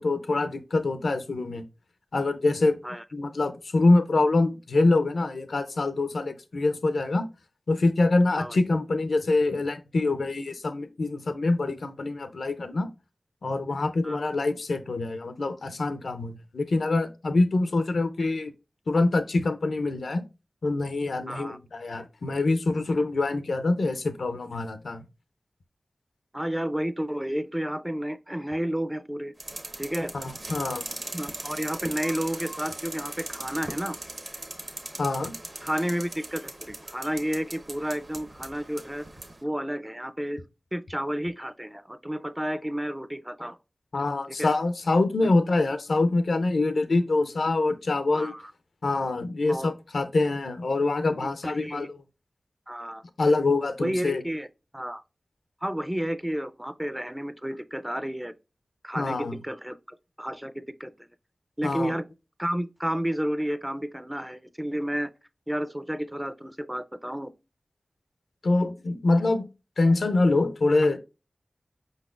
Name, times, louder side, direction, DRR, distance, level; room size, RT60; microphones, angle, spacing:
voice 1, 0.0-1.6 2.1-2.8 3.1-7.2 7.7-12.9 13.4-18.5 18.9-20.2 20.6-25.0 30.1-30.9 35.0-35.3 43.9-48.3 48.8-52.0 53.2-54.2 59.0-59.4 61.6-61.9 68.4-69.5 69.8-71.0, left 2 dB, 85° left, 0.5 m, -25 dB
voice 2, 21.3-21.6 26.3-29.3 29.8-30.1 31.1-34.0 35.6-39.1 39.4-40.4 40.7-43.6 44.3-44.5 48.1-48.5 49.4-49.7 51.4-51.9 52.7-53.0 53.8-54.5 54.7-55.0 55.6-58.3 58.8-61.1 61.6-62.0 62.4-65.1 65.5-67.3, equal, 10° right, 0.4 m, -31 dB
sound 1, 29.4-39.4, right 2 dB, 50° right, 0.9 m, -39 dB
5.0 x 4.0 x 2.3 m
cardioid pair, 45°, 0 cm